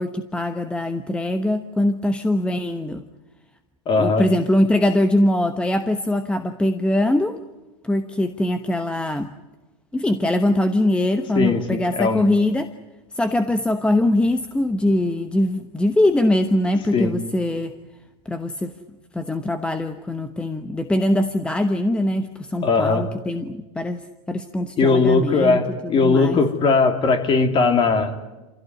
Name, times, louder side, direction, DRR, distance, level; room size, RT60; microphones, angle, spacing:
voice 1, 0.0-3.0 4.0-7.4 7.8-9.3 9.9-12.7 13.1-17.7 18.2-18.7 19.1-25.6 25.8-26.4, left 1 dB, 5° left, 9 dB, 1.0 m, -22 dB
voice 2, 3.9-4.2 11.3-12.2 16.9-17.1 22.6-23.1 24.8-28.1, left 4 dB, 30° left, 6 dB, 3.1 m, -19 dB
27.5 x 16.0 x 9.7 m, 1.1 s
supercardioid pair, 130°, 17 cm